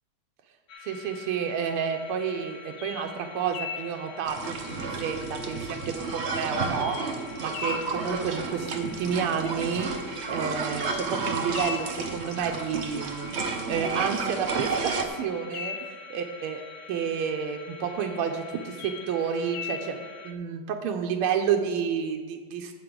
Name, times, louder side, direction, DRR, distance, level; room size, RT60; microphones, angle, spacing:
sound 1, 0.7-20.3, left 6 dB, 70° left, 1.6 m, -42 dB
voice 1, 0.8-7.0 7.4-9.9 10.3-15.8 16.1-16.6 16.9-20.0 20.2-22.8, right 7 dB, 85° right, 4 dB, 1.6 m, -30 dB
sound 2, 4.2-15.1, right 4 dB, 55° right, 0.7 m, -32 dB
12.5 x 8.0 x 3.8 m, 1.5 s
omnidirectional pair, 2.4 m